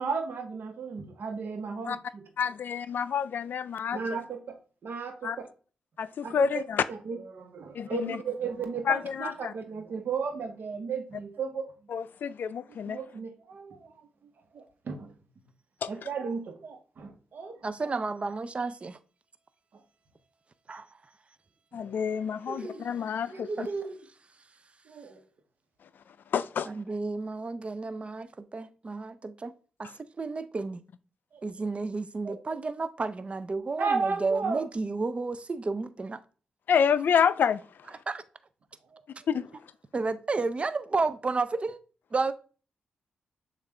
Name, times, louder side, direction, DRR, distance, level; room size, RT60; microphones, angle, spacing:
voice 1, 0.0-2.3 3.9-5.5 6.2-6.6 6.9-11.7 12.8-14.1 14.5-15.1 15.9-17.6 21.7-21.9 22.5-22.9 23.3-24.0 24.8-25.2 31.3-31.4 32.2-32.4 33.8-34.7 38.9-39.0 39.3-39.4, right 5 dB, 65° right, 1.0 m, -35 dB
voice 2, 2.4-4.0 5.2-5.4 6.0-6.8 7.7-8.2 8.9-9.5 11.9-13.0 15.8-15.9 21.7-23.7 26.3-26.7 36.7-37.6 39.3-39.4, left 7 dB, 65° left, 0.3 m, -28 dB
voice 3, 17.6-19.0 20.7-20.8 23.6-23.7 26.7-29.5 29.8-29.9 30.2-30.8 31.4-36.2 38.1-38.2 39.9-41.8 42.1-42.3, right 3 dB, 35° right, 0.5 m, -31 dB
6.7 x 2.5 x 3.2 m
cardioid pair, 55°, 4 cm